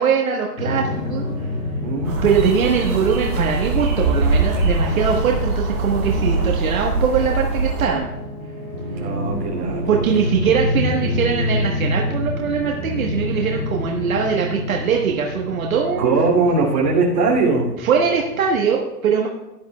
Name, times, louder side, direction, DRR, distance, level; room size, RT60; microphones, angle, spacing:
voice 1, 0.0-1.5 2.2-8.1 9.9-16.4 17.8-19.3, right 6 dB, 55° right, 0 dB, 1.3 m, -21 dB
sound 1, 0.6-18.6, left 1 dB, 20° left, 2.1 m, -28 dB
voice 2, 1.8-2.2 9.0-10.0 16.0-17.7, right 3 dB, 25° right, -4 dB, 2.8 m, -20 dB
sound 2, 2.0-7.9, right 3 dB, 10° right, 0.9 m, -22 dB
16.5 x 10.5 x 2.3 m, 1.0 s
hypercardioid pair, 175°, 49 cm